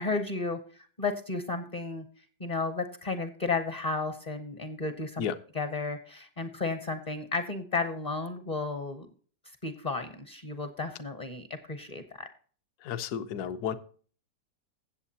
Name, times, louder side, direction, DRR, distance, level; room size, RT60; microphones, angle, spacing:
voice 1, 0.0-2.0 2.4-5.3 5.5-9.1 9.6-12.3, left 3 dB, 35° left, 8 dB, 0.7 m, -33 dB
voice 2, 12.8-13.7, left 8 dB, 65° left, 11 dB, 1.2 m, -32 dB
16.0 x 7.5 x 2.8 m, 0.43 s
omnidirectional pair, 1.9 m